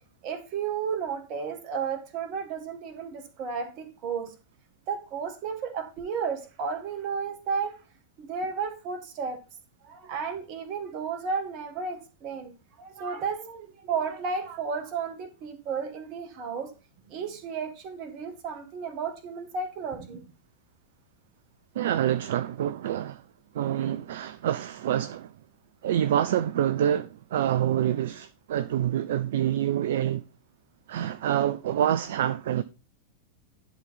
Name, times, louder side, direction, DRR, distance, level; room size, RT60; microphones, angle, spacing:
voice 1, 0.2-4.3 4.9-7.7 8.2-9.4 9.8-12.5 12.8-16.7 17.1-20.2, right 5 dB, 40° right, 1.7 m, -33 dB
voice 2, 21.8-23.2 23.5-25.3 25.8-30.2 30.9-32.6, right 11 dB, 55° right, 0.4 m, -26 dB
10.5 x 4.0 x 5.5 m
figure-of-eight pair, 90°, 0 cm